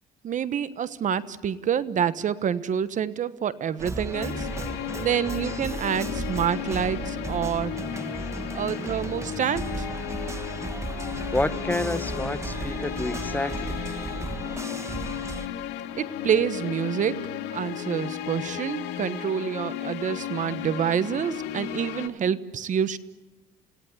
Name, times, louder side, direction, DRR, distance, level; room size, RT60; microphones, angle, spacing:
voice 1, 0.2-4.5 5.0-7.8 8.5-9.9 16.0-17.2 17.5-23.0, right 8 dB, 50° right, 15 dB, 1.2 m, -27 dB
sound 1, 3.8-15.5, right 3 dB, 15° right, 1.6 m, -35 dB
sound 2, 4.1-22.1, left 10 dB, 90° left, 2.2 m, -34 dB
voice 2, 11.3-13.8, left 2 dB, 10° left, 12 dB, 1.1 m, -29 dB
29.5 x 17.5 x 9.9 m, 1.0 s
cardioid pair, 110°, 17 cm